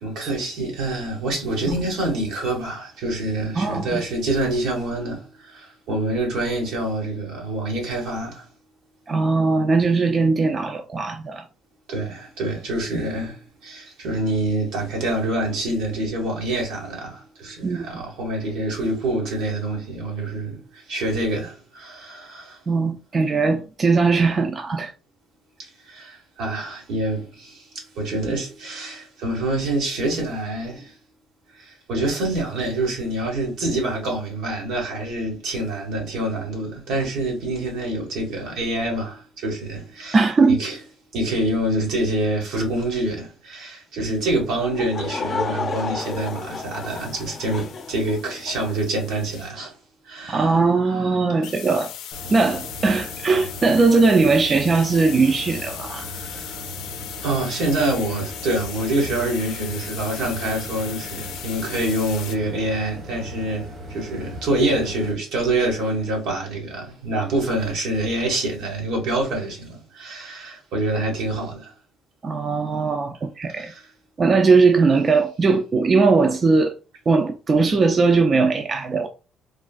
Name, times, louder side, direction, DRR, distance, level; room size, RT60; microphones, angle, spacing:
voice 1, 0.0-8.4 11.9-22.6 25.9-30.9 31.6-40.8 41.1-49.7 50.1-51.1 56.0-56.6 57.2-71.7 73.5-73.9, right 2 dB, 85° right, 1.4 m, -26 dB
voice 2, 3.6-4.0 9.1-11.4 17.6-18.1 22.7-24.9 40.1-40.6 50.3-51.9 52.3-56.1 72.2-73.7 74.2-76.7 77.1-79.1, right 4 dB, 40° right, 0.4 m, -19 dB
Laughter / Crowd, 44.6-48.8, left 4 dB, 45° left, 0.6 m, -31 dB
sound 1, 46.0-49.5 51.4-62.4, left 10 dB, 90° left, 0.4 m, -38 dB
sound 2, 52.1-65.1, equal, 60° right, 1.3 m, -38 dB
3.5 x 2.3 x 2.4 m
cardioid pair, 90°, 0 cm